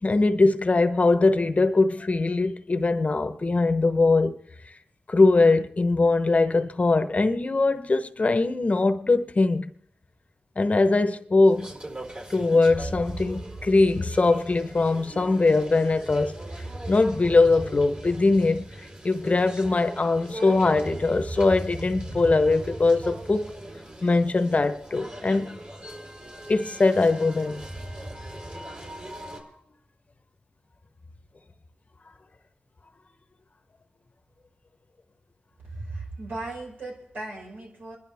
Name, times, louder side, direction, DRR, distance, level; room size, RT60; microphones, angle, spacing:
voice 1, 0.0-4.3 5.1-9.7 10.6-11.7 12.3-16.4 16.9-18.7 19.0-23.5 24.0-25.6 26.5-27.6, left 3 dB, 45° left, 0.9 m, -21 dB
sound 1, 11.4-29.4, right 1 dB, 40° right, 4.4 m, -39 dB
voice 2, 35.6-38.0, right 2 dB, 75° right, 5.4 m, -37 dB
27.5 x 11.5 x 3.5 m
cardioid pair, 65°, 3 cm